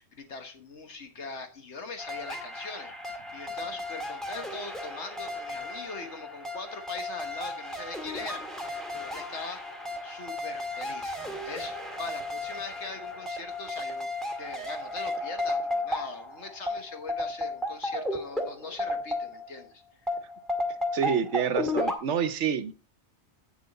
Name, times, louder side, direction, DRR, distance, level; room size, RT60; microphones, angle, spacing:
voice 1, 0.0-9.6 10.0-14.1 14.4-20.1, left 4 dB, 70° left, 6 dB, 1.6 m, -41 dB
sound 1, 2.0-19.6 20.1-21.9, left 1 dB, ahead, 1.8 m, -34 dB
voice 2, 20.9-22.7, right 7 dB, 80° right, 12 dB, 1.1 m, -27 dB
9.0 x 7.3 x 4.1 m, 0.34 s
omnidirectional pair, 1.2 m